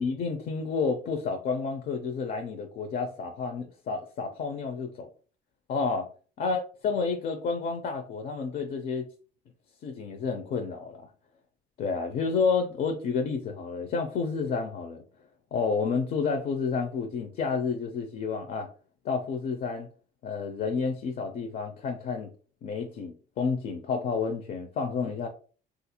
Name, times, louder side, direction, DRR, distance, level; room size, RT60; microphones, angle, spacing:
voice 1, 0.0-5.1 5.7-6.1 6.4-9.1 9.8-11.1 11.8-15.0 15.5-18.7 19.0-19.9 20.2-22.3 22.6-25.3, left 5 dB, 55° left, 0.5 m, -30 dB
3.4 x 2.5 x 2.8 m
cardioid pair, 110°, 17 cm